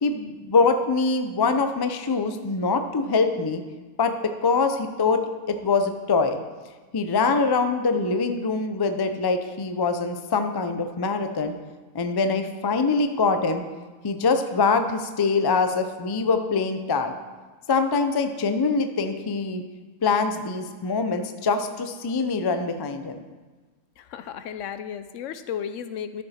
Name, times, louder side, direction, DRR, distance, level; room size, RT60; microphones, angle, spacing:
voice 1, 0.0-3.6 4.0-4.1 4.4-5.2 5.5-6.4 6.9-11.5 11.9-13.6 14.0-17.1 17.7-19.6 20.0-23.2, left 4 dB, 35° left, 7 dB, 0.3 m, -24 dB
voice 2, 24.0-26.2, left 8 dB, 75° left, 11 dB, 0.9 m, -34 dB
12.5 x 6.9 x 4.3 m, 1.3 s
omnidirectional pair, 1.3 m